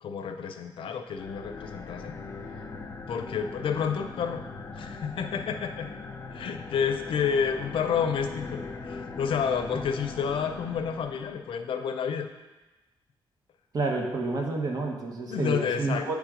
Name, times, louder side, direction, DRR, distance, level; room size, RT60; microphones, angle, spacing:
voice 1, 0.0-2.2 3.1-4.4 4.8-5.9 6.3-12.3 15.3-16.1, left 7 dB, 80° left, 6 dB, 0.6 m, -30 dB
sound 1, 1.1-11.6, left 4 dB, 30° left, 0.5 m, -40 dB
voice 2, 13.7-16.1, right 3 dB, 45° right, 0 dB, 1.1 m, -29 dB
9.0 x 3.5 x 5.0 m, 1.1 s
wide cardioid pair, 140°, 9 cm